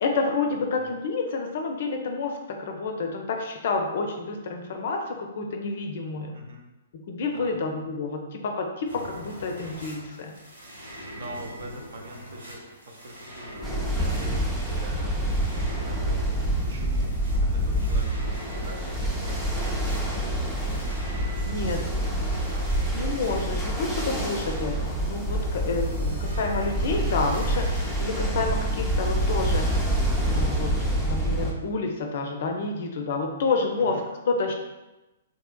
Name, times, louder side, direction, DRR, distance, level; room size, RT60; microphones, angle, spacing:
voice 1, 0.0-6.4 6.9-10.3 21.5-21.8 22.9-29.9 30.3-30.7 31.1-34.5, left 3 dB, 55° left, 3 dB, 0.5 m, -29 dB
voice 2, 6.3-6.7 7.3-7.6 11.1-22.7 33.8-34.0, right 1 dB, 60° right, 1 dB, 0.6 m, -44 dB
sound 1, 8.8-28.1, equal, 75° right, 1.1 m, -43 dB
Ocean, 13.6-31.5, right 1 dB, 5° right, 0.5 m, -27 dB
3.3 x 2.8 x 2.2 m, 1.0 s
figure-of-eight pair, 120°, 0 cm